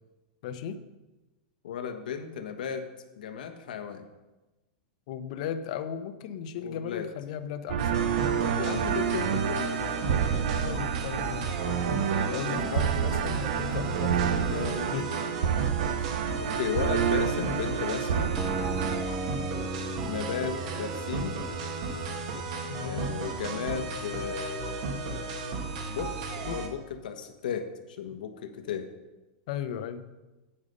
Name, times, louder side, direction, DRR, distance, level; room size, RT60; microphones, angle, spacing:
voice 1, 0.4-0.8 5.1-8.0 10.6-11.9 12.3-15.1 22.7-23.1 26.4-26.6 29.5-30.1, left 8 dB, 50° left, 10 dB, 0.9 m, -36 dB
voice 2, 1.6-2.8 3.2-4.0 6.6-7.1 8.6-9.8 11.8-13.6 16.4-18.4 20.0-21.4 22.7-25.0 25.9-28.9, left 7 dB, 80° left, 6 dB, 1.4 m, -35 dB
sound 1, 7.7-19.0, right 8 dB, 70° right, 0.8 m, -29 dB
sound 2, 7.8-26.7, right 3 dB, 50° right, 1.6 m, -35 dB
sound 3, 18.4-24.4, right 1 dB, 5° right, 0.3 m, -39 dB
9.3 x 8.8 x 5.4 m, 1.1 s
supercardioid pair, 160°, 5 cm